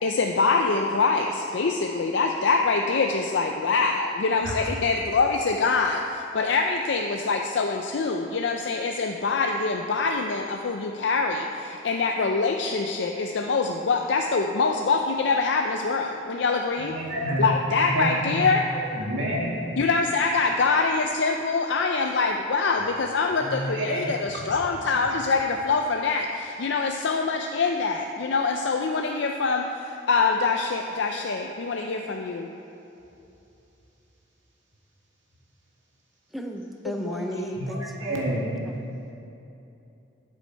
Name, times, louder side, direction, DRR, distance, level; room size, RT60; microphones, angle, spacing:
voice 1, 0.0-17.0 17.4-18.7 19.8-32.5 36.9-37.6, left 4 dB, 75° left, 3 dB, 0.5 m, -24 dB
voice 2, 16.8-17.4 17.9-18.4 18.8-19.6 23.4-24.0 37.7-38.5, right 1 dB, 85° right, -4 dB, 2.2 m, -29 dB
voice 3, 36.3-38.7, equal, ahead, 2 dB, 0.5 m, -35 dB
12.0 x 7.0 x 4.5 m, 2.9 s
head